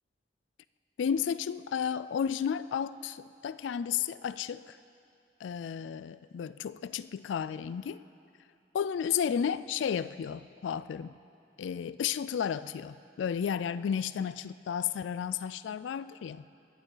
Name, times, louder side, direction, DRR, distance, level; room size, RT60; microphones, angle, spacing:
voice 1, 1.0-4.8 5.4-8.0 8.7-11.2 11.6-16.4, left 8 dB, 90° left, 16 dB, 0.3 m, -33 dB
21.0 x 11.5 x 3.9 m, 2.6 s
head